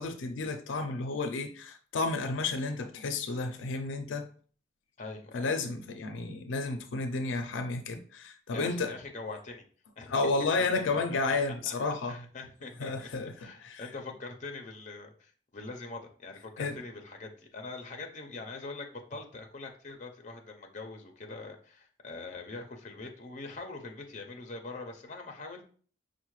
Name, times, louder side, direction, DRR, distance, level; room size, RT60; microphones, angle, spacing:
voice 1, 0.0-4.3 5.3-8.9 10.1-12.3 12.8-13.8 16.6-16.8, left 3 dB, 90° left, 0.4 m, -32 dB
voice 2, 5.0-5.5 8.5-9.6 10.0-10.1 10.6-10.7 10.9-11.2 11.6-11.7 12.1-25.6, left 3 dB, 40° left, 0.5 m, -43 dB
5.3 x 2.1 x 3.0 m
head